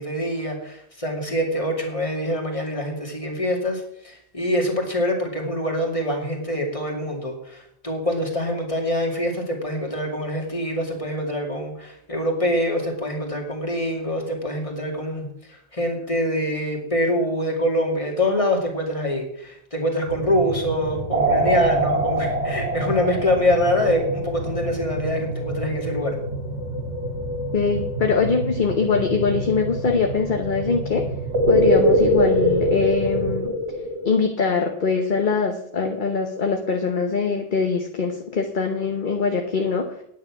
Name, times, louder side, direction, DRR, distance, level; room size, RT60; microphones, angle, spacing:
voice 1, 0.0-26.2, left 1 dB, 30° left, 1 dB, 2.5 m, -25 dB
sound 1, 20.1-33.4, equal, 90° left, 1.7 m, -30 dB
sound 2, 21.1-24.5 31.3-34.1, right 1 dB, 90° right, 2.1 m, -22 dB
voice 2, 27.5-31.0 31.5-33.5 34.0-39.8, left 5 dB, 50° left, 3 dB, 1.2 m, -22 dB
10.0 x 9.1 x 6.0 m, 0.71 s
omnidirectional pair, 1.1 m